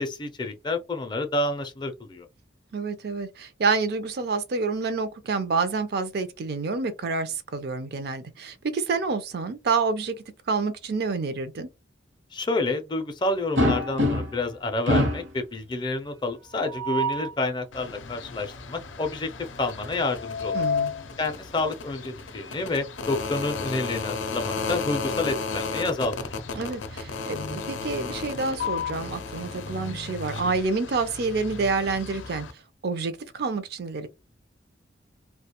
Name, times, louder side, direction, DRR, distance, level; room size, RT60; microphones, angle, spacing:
voice 1, 0.0-2.3 12.3-19.3 19.6-20.6 21.2-26.2, left 2 dB, 25° left, 0.4 m, -29 dB
voice 2, 2.7-10.2 10.5-11.7 20.5-20.9 26.6-32.5 32.8-34.1, right 4 dB, 55° right, 0.4 m, -28 dB
sound 1, 13.6-14.5 14.9-15.3 16.6-17.3 20.0-21.0 22.4-22.6 23.0-23.1 24.6-25.9, left 1 dB, 70° right, 0.9 m, -27 dB
sound 2, 17.7-32.5, left 4 dB, 80° left, 0.5 m, -34 dB
2.3 x 2.2 x 2.8 m
head